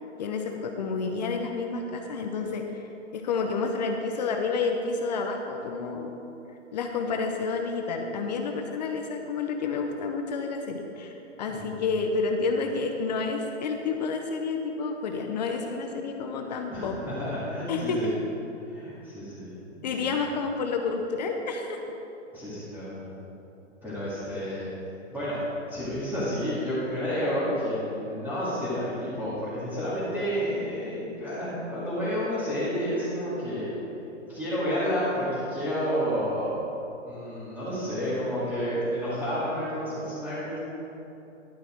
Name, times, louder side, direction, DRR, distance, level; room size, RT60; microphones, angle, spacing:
voice 1, 0.2-6.2 6.7-17.0 17.7-18.2 19.8-21.8, left 4 dB, 35° left, 4 dB, 0.7 m, -30 dB
voice 2, 11.5-11.8 16.7-18.1 18.7-20.1 22.3-23.0 23.8-24.6 25.1-25.4 25.7-33.7 34.3-36.5 37.0-40.6, equal, 5° right, -14 dB, 2.6 m, -30 dB
11.5 x 7.8 x 4.6 m, 3.0 s
hypercardioid pair, 150°, 37 cm